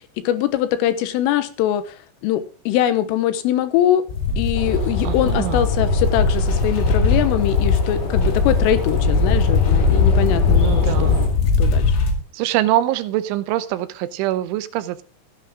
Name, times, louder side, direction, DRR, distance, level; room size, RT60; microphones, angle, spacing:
voice 1, 0.3-4.0 4.4-11.2 11.6-12.0, left 12 dB, 90° left, 3.7 m, -22 dB
sound 1, 4.1-12.1, left 4 dB, 70° left, 4.5 m, -19 dB
sound 2, 4.5-11.3, equal, 25° left, 3.0 m, -28 dB
voice 2, 5.0-5.6 10.6-11.2 12.3-15.0, right 14 dB, 80° right, 3.1 m, -24 dB
14.5 x 10.0 x 3.7 m
omnidirectional pair, 5.6 m